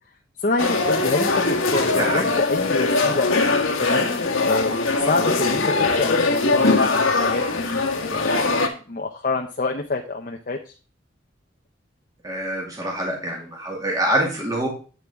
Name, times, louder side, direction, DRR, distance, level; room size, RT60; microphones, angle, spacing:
voice 1, 0.4-3.3 3.8-6.2 6.5-8.5 8.9-10.7, left 3 dB, 40° left, 2 dB, 0.7 m, -27 dB
sound 1, 0.6-8.7, left 3 dB, 85° left, 1.5 m, -21 dB
voice 2, 1.9-2.3 12.2-14.7, right 1 dB, 20° right, -1 dB, 2.3 m, -25 dB
8.6 x 7.0 x 3.5 m, 0.37 s
head